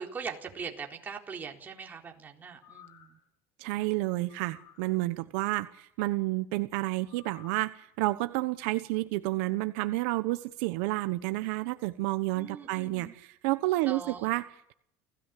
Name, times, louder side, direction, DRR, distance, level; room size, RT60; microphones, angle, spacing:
voice 1, 0.0-3.2 5.1-5.3 12.3-13.1 13.8-14.3, right 5 dB, 25° right, 1 dB, 4.1 m, -41 dB
sound 1, 2.5-3.3 4.3-5.0 7.1-7.7 8.2-8.3, left 11 dB, 60° left, 5.6 m, -56 dB
voice 2, 3.6-14.7, right 19 dB, 80° right, 11 dB, 1.1 m, -30 dB
29.0 x 16.5 x 8.4 m, 0.75 s
cardioid pair, 125°, 8 cm